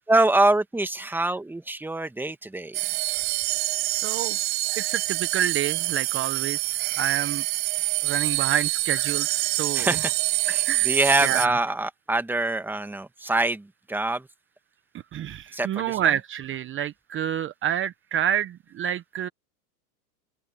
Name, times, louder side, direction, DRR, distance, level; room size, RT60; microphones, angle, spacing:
voice 1, 0.1-2.8 9.7-10.1 10.4-14.3 15.5-16.0, right 2 dB, 5° right, 1.7 m, -25 dB
sound 1, 2.7-11.5, right 29 dB, 55° right, 5.7 m, -26 dB
voice 2, 3.8-4.4 4.8-7.4 8.0-10.0 10.5-11.5 15.1-19.3, right 10 dB, 25° right, 1.1 m, -28 dB
open air
hypercardioid pair, 115°, 45 cm